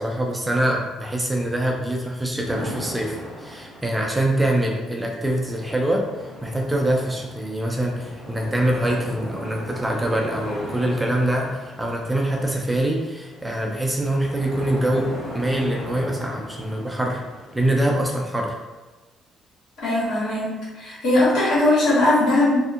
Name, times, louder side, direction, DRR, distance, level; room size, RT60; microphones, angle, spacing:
voice 1, 0.0-15.1 15.3-17.2 17.5-18.6, right 1 dB, 10° right, 0 dB, 0.3 m, -24 dB
sound 1, 2.4-18.1, equal, 40° left, 1.4 m, -38 dB
voice 2, 19.8-22.6, left 2 dB, 75° left, -9 dB, 1.5 m, -19 dB
2.7 x 2.5 x 2.4 m, 1.2 s
cardioid pair, 150°, 0 cm